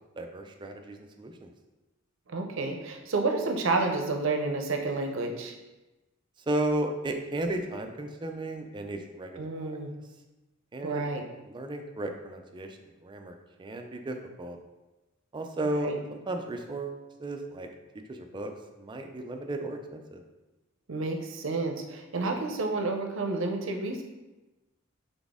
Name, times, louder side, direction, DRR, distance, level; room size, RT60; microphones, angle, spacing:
voice 1, 0.2-1.5 6.5-9.8 10.7-11.1 11.5-14.6 15.3-17.7 18.1-18.5 18.8-20.2, right 1 dB, 25° right, 4 dB, 0.4 m, -34 dB
voice 2, 2.3-5.5 9.4-9.9 10.8-11.2 15.6-16.0 20.9-24.0, right 3 dB, 70° right, 3 dB, 0.6 m, -30 dB
4.1 x 3.5 x 3.5 m, 1.1 s
head